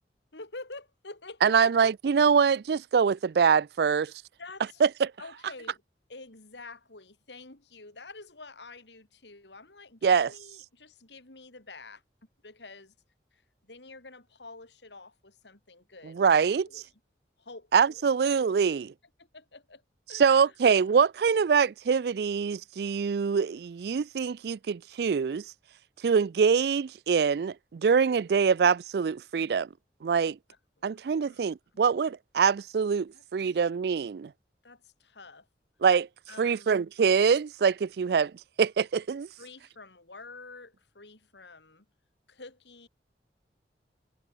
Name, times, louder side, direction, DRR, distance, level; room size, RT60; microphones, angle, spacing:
voice 1, 0.3-1.8 4.4-4.8 5.2-5.8 6.1-12.0 12.4-12.9 13.3-16.9 17.4-18.1 19.2-19.8 20.1-20.5 30.9-31.4 33.1-33.6 34.6-35.5 36.3-36.8 39.4-41.9 42.3-42.9, left 3 dB, 85° left, 3.6 m, -48 dB
voice 2, 1.4-4.1 4.8-5.1 10.0-10.3 16.1-16.7 17.7-18.9 20.1-25.4 26.0-29.7 30.0-30.4 30.8-34.3 35.8-36.1 36.4-38.3 38.6-39.3, right 6 dB, 65° right, 0.4 m, -24 dB
head